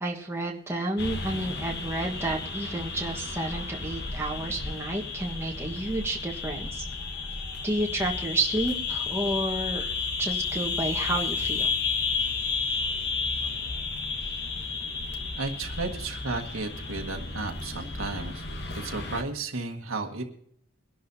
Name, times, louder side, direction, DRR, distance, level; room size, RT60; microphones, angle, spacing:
voice 1, 0.0-6.8 7.6-9.8 10.2-11.7, right 2 dB, 10° right, -1 dB, 1.4 m, -30 dB
sound 1, 1.0-19.2, left 4 dB, 50° left, 1.2 m, -32 dB
voice 2, 15.3-18.4 18.7-20.2, right 3 dB, 80° right, 3 dB, 1.7 m, -33 dB
23.0 x 11.5 x 2.8 m, 0.63 s
head